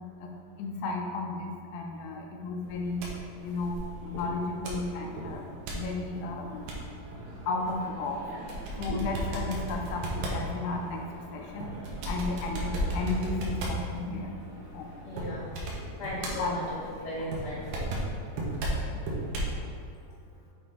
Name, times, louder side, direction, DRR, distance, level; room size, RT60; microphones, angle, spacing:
voice 1, 0.6-3.0 3.4-5.5 5.7-6.7 7.5-8.2 8.8-11.0 11.3-11.7 12.1-14.4 14.7-14.9 16.4-16.9 17.2-17.3, left 3 dB, 80° left, 1 dB, 2.4 m, -33 dB
sound 1, 2.6-19.6, right 1 dB, 75° right, 2.7 m, -36 dB
voice 2, 15.0-15.5 16.0-16.6 17.0-17.9 18.7-18.9, left 1 dB, 40° left, -7 dB, 1.4 m, -37 dB
8.2 x 3.7 x 4.3 m, 2.2 s
omnidirectional pair, 4.3 m